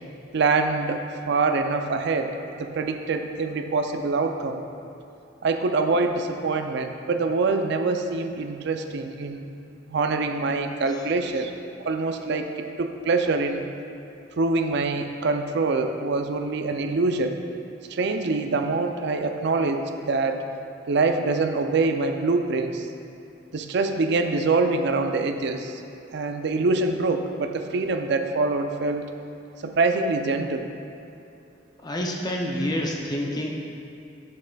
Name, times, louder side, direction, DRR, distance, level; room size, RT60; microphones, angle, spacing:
voice 1, 0.3-4.6 5.4-9.5 9.9-11.5 11.8-13.6 14.4-17.4 17.9-20.4 20.9-22.9 23.5-25.8 26.1-29.1 29.6-30.7, right 3 dB, 60° right, 6 dB, 0.4 m, -25 dB
voice 2, 31.8-33.6, equal, 20° left, -1 dB, 0.5 m, -28 dB
7.6 x 7.3 x 2.3 m, 2.7 s
head